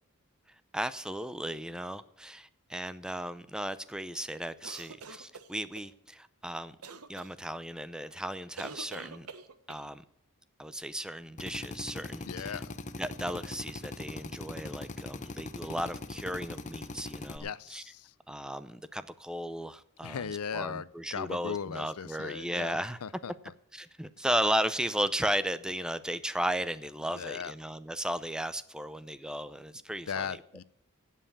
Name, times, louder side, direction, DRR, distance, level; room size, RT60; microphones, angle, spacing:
voice 1, 0.7-6.8 7.1-9.3 9.7-10.0 10.6-12.6 13.0-17.8 18.3-23.0 23.7-30.4, equal, 5° right, 0.5 m, -35 dB
sound 1, 4.6-5.9 6.8-7.3 8.6-9.9, right 5 dB, 85° right, 1.1 m, -45 dB
Drill, 11.4-17.4, left 2 dB, 35° left, 0.8 m, -41 dB
voice 2, 12.2-12.7 17.4-18.1 20.0-23.3 27.2-27.5 30.1-30.6, left 7 dB, 85° left, 0.6 m, -38 dB
16.5 x 5.6 x 8.6 m
head